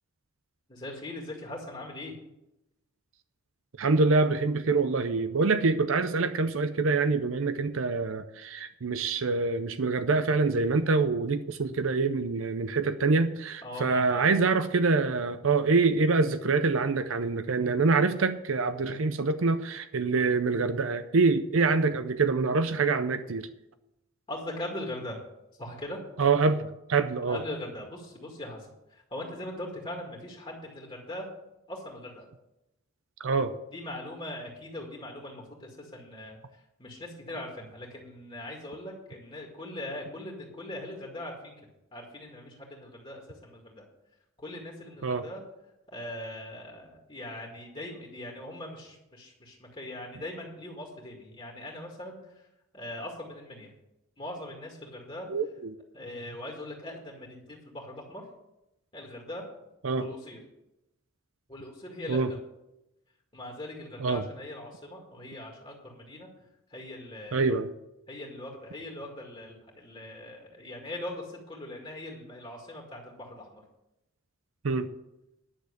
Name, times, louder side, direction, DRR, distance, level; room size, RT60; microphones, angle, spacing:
voice 1, 0.7-2.2 13.6-14.4 24.3-25.2 25.6-26.0 27.3-31.3 31.7-32.3 33.7-36.4 36.8-41.5 41.9-43.8 44.4-45.4 45.9-52.2 52.7-53.7 54.2-55.3 55.9-58.2 58.9-59.4 60.0-60.4 61.5-62.4 63.3-66.3 66.7-67.5 68.1-73.6, left 1 dB, 25° left, -1 dB, 2.0 m, -40 dB
voice 2, 3.8-23.5 26.2-27.4 33.2-33.5 45.0-45.2 55.3-55.7 59.8-60.1 62.1-62.3 64.0-64.2 67.3-67.7 74.6-74.9, right 4 dB, 70° right, 11 dB, 0.6 m, -25 dB
11.0 x 6.4 x 8.2 m, 0.89 s
head